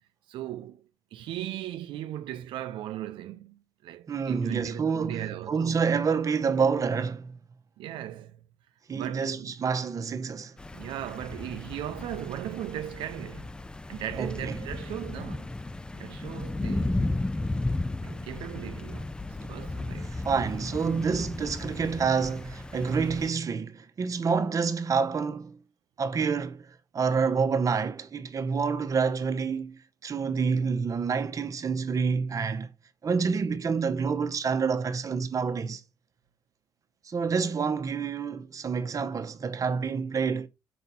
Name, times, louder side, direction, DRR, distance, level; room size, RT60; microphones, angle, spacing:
voice 1, 0.3-5.8 7.8-8.4 8.9-9.5 10.7-13.5 13.9-15.5 15.9-17.0 17.9-20.2, right 12 dB, 90° right, 0.4 m, -38 dB
voice 2, 4.1-7.3 8.9-10.6 14.2-14.6 19.4-19.5 20.1-25.6 26.0-32.7 33.0-35.8 37.0-40.5, right 5 dB, 40° right, 0.9 m, -28 dB
sound 1, 10.6-23.3, left 2 dB, 10° left, 0.4 m, -34 dB
5.1 x 4.1 x 5.5 m
cardioid pair, 95°, 8 cm